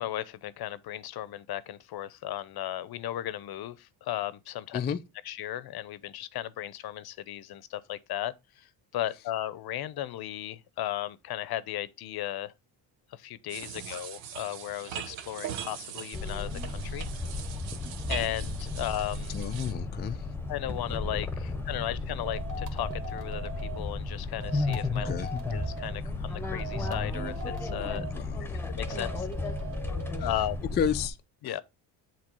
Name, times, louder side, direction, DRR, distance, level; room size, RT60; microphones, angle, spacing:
voice 1, 0.0-4.8 5.2-12.5 13.1-17.1 18.1-19.4 20.5-25.1 25.5-28.1 28.7-29.3 30.2-30.7 31.4-31.6, left 13 dB, 55° left, 0.7 m, -36 dB
sound 1, 13.5-19.7, right 9 dB, 80° right, 1.1 m, -41 dB
sound 2, 16.1-31.1, left 3 dB, 5° left, 0.9 m, -34 dB
voice 2, 19.3-20.2 25.0-25.3 28.1-28.6 30.8-31.2, left 8 dB, 25° left, 0.3 m, -31 dB
sound 3, 22.2-23.8 24.4-25.9 26.6-28.1 28.8-30.3, right 2 dB, 40° right, 1.8 m, -41 dB
7.3 x 3.0 x 5.3 m
cardioid pair, 90°, 46 cm